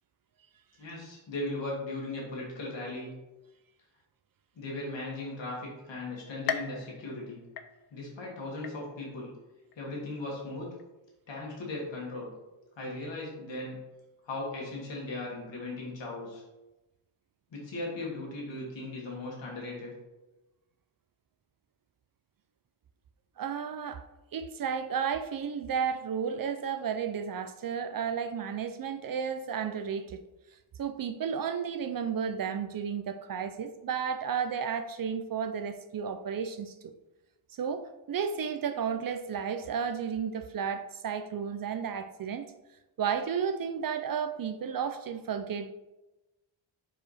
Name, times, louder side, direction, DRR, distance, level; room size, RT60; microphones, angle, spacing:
voice 1, 0.8-3.1 4.6-7.4 7.9-9.3 9.8-10.7 11.3-12.3 12.8-13.8 14.2-16.4 17.5-19.9, left 2 dB, 65° left, -3 dB, 2.1 m, -37 dB
sound 1, 6.5-8.2 8.6-9.2 9.7-9.8 10.8-10.9, left 8 dB, 50° left, 0.5 m, -38 dB
voice 2, 23.4-24.0 24.3-30.2 30.8-36.8 37.5-42.5 43.0-45.7, right 7 dB, 45° right, 9 dB, 0.5 m, -33 dB
5.0 x 4.7 x 4.1 m, 1.0 s
cardioid pair, 110°, 48 cm